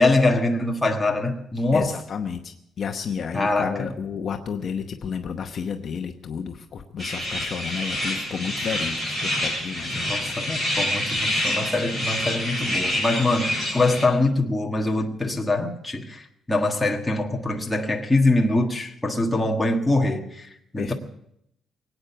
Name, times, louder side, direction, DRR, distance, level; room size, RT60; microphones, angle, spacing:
voice 1, 0.0-1.9 3.3-3.9 10.0-20.9, left 2 dB, 10° left, 1.6 m, -23 dB
voice 2, 1.7-10.3 20.8-20.9, left 6 dB, 40° left, 0.9 m, -31 dB
sound 1, 7.0-14.1, left 1 dB, 25° right, 7.1 m, -27 dB
23.0 x 9.1 x 6.9 m
cardioid pair, 170°, 0 cm